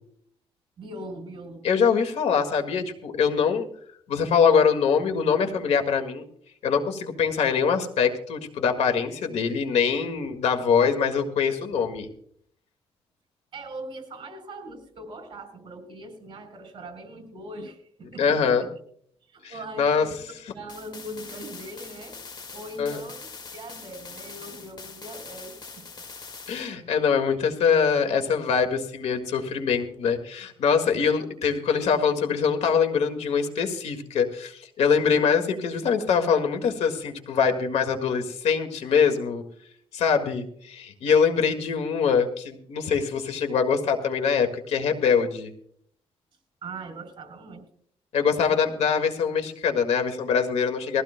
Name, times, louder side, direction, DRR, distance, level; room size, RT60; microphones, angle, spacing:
voice 1, 0.8-1.6 13.5-18.7 19.3-20.2 20.5-22.2 22.5-26.0 46.6-47.6 48.4-48.6, right 1 dB, 45° right, 6 dB, 3.8 m, -40 dB
voice 2, 1.6-3.7 4.1-6.3 6.6-12.1 18.2-18.7 19.4-20.1 22.8-23.0 26.5-39.4 39.9-45.5 48.1-51.0, left 6 dB, 85° left, 7 dB, 1.8 m, -23 dB
sound 1, 20.7-26.7, left 4 dB, 40° left, 1.8 m, -43 dB
21.5 x 15.5 x 2.2 m, 0.62 s
cardioid pair, 120°, 11 cm